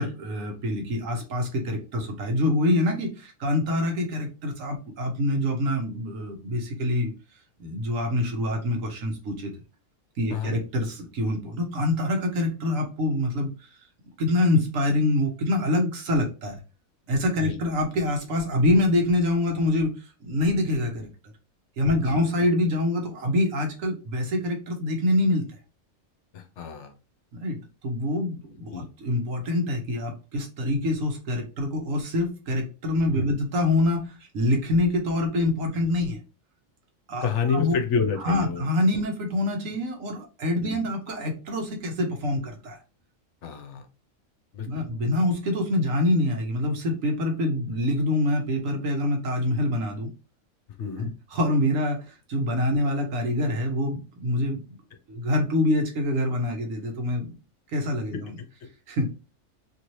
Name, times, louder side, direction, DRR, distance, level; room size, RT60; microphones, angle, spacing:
voice 1, 0.0-7.1 7.6-9.5 10.2-13.5 14.2-16.6 17.1-21.1 21.8-25.5 27.3-36.2 37.1-37.8 38.2-42.8 44.7-50.1 51.0-54.6 55.1-57.3 57.7-58.3 58.9-59.1, left 1 dB, 80° right, 3 dB, 1.2 m, -25 dB
voice 2, 26.3-26.9 28.7-28.9 33.1-33.4 37.2-38.6 40.6-40.8 43.4-43.9 44.5-44.9 50.8-51.1, left 6 dB, 65° left, 5 dB, 0.9 m, -29 dB
2.9 x 2.7 x 3.0 m, 0.32 s
omnidirectional pair, 1.4 m